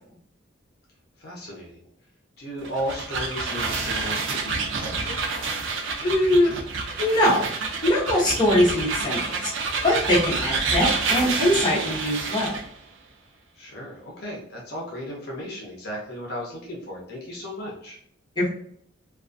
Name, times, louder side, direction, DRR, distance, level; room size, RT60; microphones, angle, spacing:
voice 1, 1.2-1.9 2.4-5.2 13.5-18.0, equal, 55° left, -3 dB, 0.6 m, -35 dB
sound 1, 2.6-12.7, right 4 dB, 70° right, 0.4 m, -28 dB
voice 2, 6.0-6.5 7.0-7.5 7.8-9.3 9.8-12.5 18.4-18.5, left 1 dB, 20° left, -7 dB, 0.8 m, -21 dB
2.3 x 2.3 x 2.5 m, 0.65 s
head